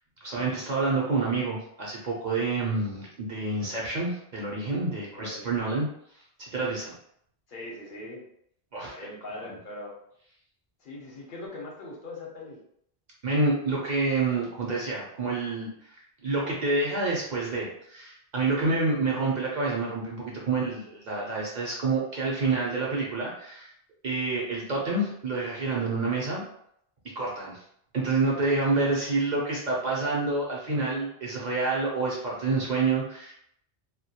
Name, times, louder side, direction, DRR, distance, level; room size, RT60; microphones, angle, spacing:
voice 1, 0.2-5.9 6.4-6.9 8.7-8.9 9.5-9.6 13.2-15.7 16.2-23.7 24.0-26.4 27.2-27.6 27.9-33.3, right 3 dB, 55° right, -3 dB, 0.6 m, -28 dB
voice 2, 5.1-5.5 7.5-8.3 8.9-9.9 10.8-12.6, left 2 dB, 60° left, -2 dB, 0.8 m, -41 dB
2.2 x 2.1 x 2.7 m, 0.71 s
omnidirectional pair, 1.1 m